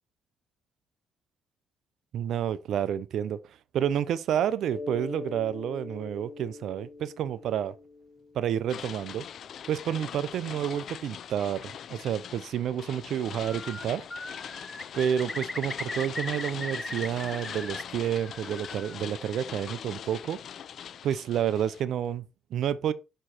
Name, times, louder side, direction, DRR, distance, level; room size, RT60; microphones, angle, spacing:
voice 1, 2.1-3.4 3.7-7.7 8.3-9.3 9.7-14.0 14.9-20.4 21.0-22.9, right 9 dB, 70° right, 0.6 m, -29 dB
Mallet percussion, 4.7-9.1, left 3 dB, 45° left, 1.8 m, -42 dB
sound 1, 8.7-21.8, left 9 dB, 65° left, 0.4 m, -42 dB
Bird, 13.3-13.9 14.1-17.8 18.1-19.0, left 2 dB, 15° left, 0.6 m, -38 dB
6.1 x 4.5 x 4.2 m
supercardioid pair, 75°, 0 cm